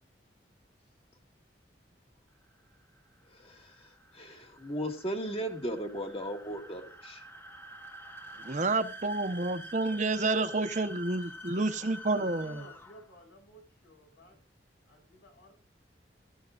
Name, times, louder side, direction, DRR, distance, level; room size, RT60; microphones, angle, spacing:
sound 1, 2.5-13.2, equal, 10° left, 1.0 m, -48 dB
voice 1, 3.3-3.9 4.1-7.2, equal, 35° left, 4 dB, 2.0 m, -36 dB
voice 2, 8.4-12.6, right 2 dB, 40° right, 10 dB, 0.9 m, -29 dB
voice 3, 12.1-14.4 14.9-15.5, equal, 85° left, 2 dB, 7.4 m, -54 dB
16.0 x 12.0 x 2.5 m, 0.37 s
head